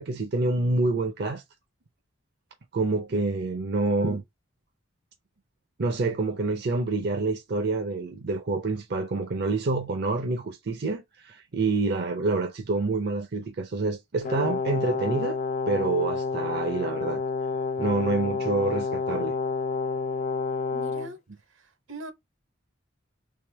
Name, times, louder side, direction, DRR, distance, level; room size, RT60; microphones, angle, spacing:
voice 1, 0.0-1.4 2.7-4.2 5.8-15.4 15.7-17.2 17.8-19.3, right 3 dB, 55° right, 0.5 m, -27 dB
Brass instrument, 14.2-21.1, left 4 dB, 35° left, 0.3 m, -29 dB
voice 2, 20.7-21.2 21.5-22.1, right 1 dB, 75° right, 0.9 m, -41 dB
3.6 x 3.3 x 3.2 m
head